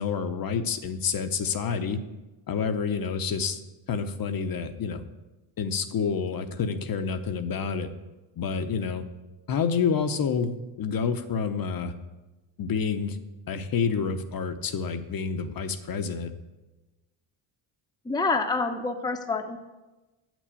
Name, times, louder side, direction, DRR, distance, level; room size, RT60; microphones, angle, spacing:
voice 1, 0.0-2.0 2.5-3.6 3.9-5.0 5.6-7.9 8.4-9.1 9.5-11.9 12.6-13.2 13.5-16.3, left 6 dB, 45° left, 9 dB, 0.9 m, -28 dB
voice 2, 18.0-19.6, left 3 dB, 10° left, 6 dB, 0.8 m, -27 dB
9.0 x 6.2 x 8.3 m, 1.1 s
cardioid pair, 115°, 48 cm